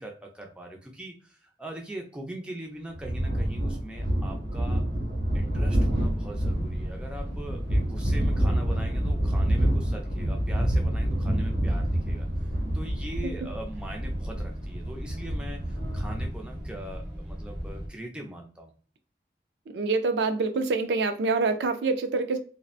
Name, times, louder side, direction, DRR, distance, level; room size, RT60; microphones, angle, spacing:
voice 1, 0.0-4.8 5.3-12.3 12.7-18.7, right 1 dB, 5° right, 0.4 m, -41 dB
sound 1, 2.9-16.3, right 1 dB, 50° right, 1.2 m, -27 dB
sound 2, 5.8-17.9, equal, 30° right, 0.9 m, -38 dB
voice 2, 19.7-22.4, right 3 dB, 80° right, 0.4 m, -26 dB
2.6 x 2.1 x 2.3 m
head